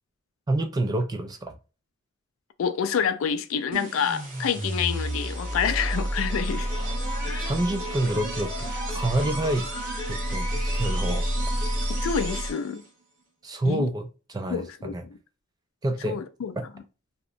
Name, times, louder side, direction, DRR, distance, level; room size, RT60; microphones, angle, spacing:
voice 1, 0.5-1.5 7.4-9.7 10.1-11.2 13.4-15.0 15.8-16.2, right 1 dB, 20° right, 0.3 m, -28 dB
voice 2, 2.6-6.7 7.3-7.5 11.9-12.8 13.6-13.9 14.5-15.2 16.1-16.6, left 7 dB, 70° left, 0.3 m, -28 dB
sound 1, 3.7-12.9, equal, 40° right, 0.8 m, -29 dB
2.8 x 2.0 x 2.5 m
head